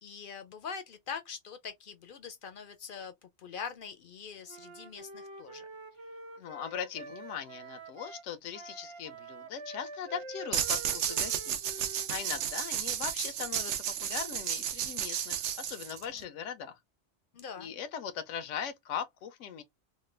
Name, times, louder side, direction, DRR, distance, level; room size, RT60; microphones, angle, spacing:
voice 1, 0.0-3.1 3.4-5.7 17.3-17.7, left 6 dB, 60° left, 0.6 m, -43 dB
Wind instrument woodwind instrument, 4.5-8.3 8.5-12.6, right 3 dB, 35° right, 0.5 m, -47 dB
voice 2, 6.4-16.8 17.6-19.6, left 8 dB, 90° left, 0.9 m, -40 dB
sound 1, 10.5-16.2, right 9 dB, 75° right, 0.9 m, -33 dB
3.3 x 2.1 x 3.1 m
omnidirectional pair, 1.2 m